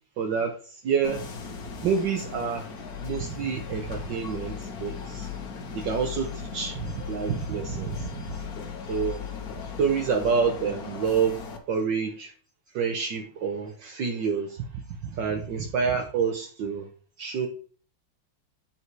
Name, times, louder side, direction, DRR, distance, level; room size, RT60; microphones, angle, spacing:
voice 1, 0.2-1.2 1.8-2.7 3.0-5.3 5.7-8.4 8.9-9.2 9.8-11.4 11.7-12.3 12.7-16.9 17.2-17.5, right 6 dB, 65° right, 1.5 m, -28 dB
sound 1, 1.0-11.6, left 6 dB, 50° left, 1.5 m, -37 dB
8.8 x 4.4 x 4.6 m
omnidirectional pair, 2.2 m